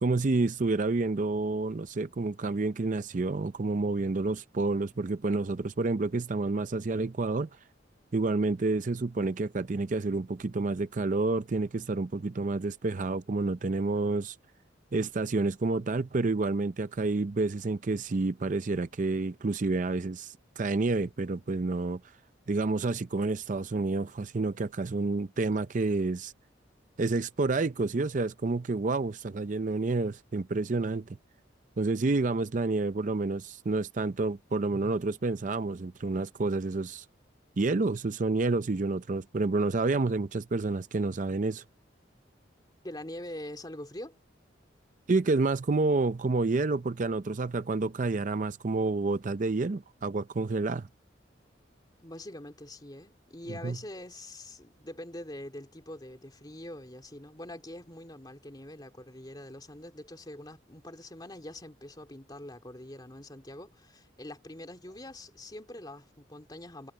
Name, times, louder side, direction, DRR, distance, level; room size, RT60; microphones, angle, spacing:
voice 1, 0.0-7.5 8.1-14.4 14.9-22.0 22.5-26.3 27.0-31.1 31.8-37.1 37.6-41.6 45.1-50.9 53.6-53.8, right 3 dB, 40° right, 0.5 m, -29 dB
voice 2, 42.8-44.2 52.0-66.9, left 1 dB, 20° left, 2.7 m, -44 dB
head